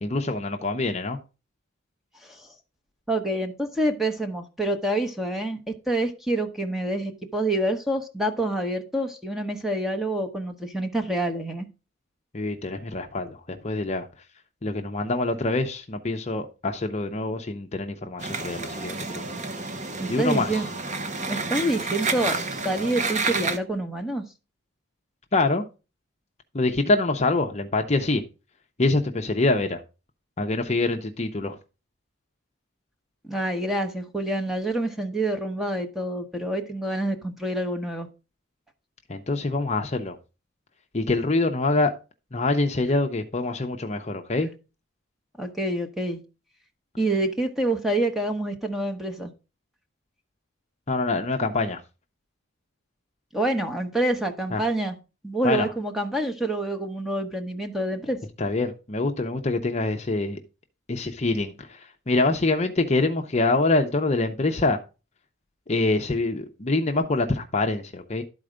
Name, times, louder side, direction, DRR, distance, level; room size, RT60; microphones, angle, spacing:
voice 1, 0.0-1.2 12.3-14.1 14.6-19.2 20.1-20.6 25.3-25.6 26.5-28.2 28.8-29.8 30.4-31.5 39.1-40.2 40.9-41.9 42.3-44.5 50.9-51.8 54.5-54.6 55.4-55.7 58.4-60.4 60.9-64.8 65.7-68.2, left 2 dB, 30° left, 0.7 m, -25 dB
voice 2, 2.2-2.5 3.1-11.7 20.0-20.7 21.3-24.2 33.2-38.1 45.4-46.2 47.0-49.3 53.3-55.0 55.2-58.2, right 1 dB, ahead, 0.9 m, -27 dB
sound 1, 18.2-23.6, right 3 dB, 35° right, 0.9 m, -30 dB
12.0 x 4.3 x 5.0 m
head